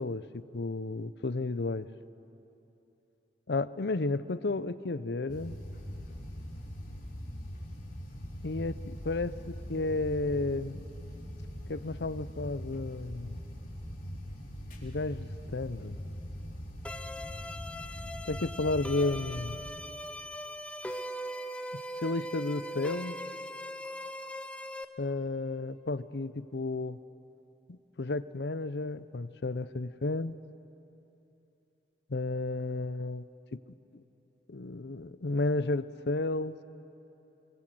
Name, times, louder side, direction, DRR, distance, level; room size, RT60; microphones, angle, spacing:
voice 1, 0.0-1.9 3.5-5.6 8.4-10.8 11.7-13.4 14.8-16.0 18.3-19.6 22.0-23.2 25.0-27.0 27.7-30.3 32.1-33.3 34.5-36.5, left 2 dB, 70° left, 15 dB, 0.7 m, -32 dB
sound 1, 5.3-19.6, equal, 50° left, 4.6 m, -42 dB
sound 2, 16.8-24.8, equal, 5° left, 0.7 m, -40 dB
26.5 x 23.0 x 7.7 m, 2.9 s
head